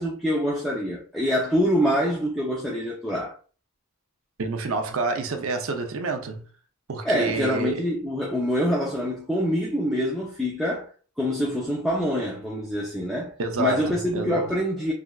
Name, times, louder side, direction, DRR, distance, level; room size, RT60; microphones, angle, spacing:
voice 1, 0.0-3.3 7.0-10.9 11.2-13.3 13.6-14.9, equal, ahead, 0.4 m, -25 dB
voice 2, 4.4-6.5 6.9-7.8 13.4-14.4, right 4 dB, 60° right, 0.5 m, -28 dB
3.3 x 2.5 x 2.3 m
head